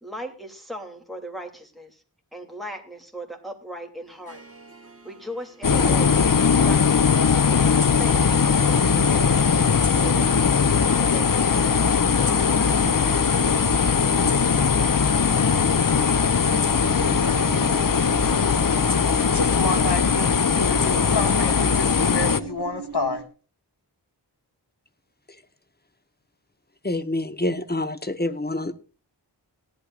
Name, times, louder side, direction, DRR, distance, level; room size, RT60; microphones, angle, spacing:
voice 1, 0.0-2.0 2.3-4.4 5.0-6.2 6.5-7.2 7.4-10.6 10.8-11.7 12.1-13.3, equal, ahead, 2.8 m, -39 dB
Harp, 4.1-19.4, right 3 dB, 35° right, 1.5 m, -43 dB
sound 1, 5.6-22.4, left 6 dB, 50° left, 0.7 m, -20 dB
sound 2, 16.5-23.2, right 6 dB, 55° right, 1.5 m, -39 dB
voice 2, 19.3-23.2, left 3 dB, 65° left, 1.8 m, -29 dB
voice 3, 26.8-28.7, left 1 dB, 20° left, 1.0 m, -27 dB
18.0 x 11.5 x 2.4 m
wide cardioid pair, 50°, 43 cm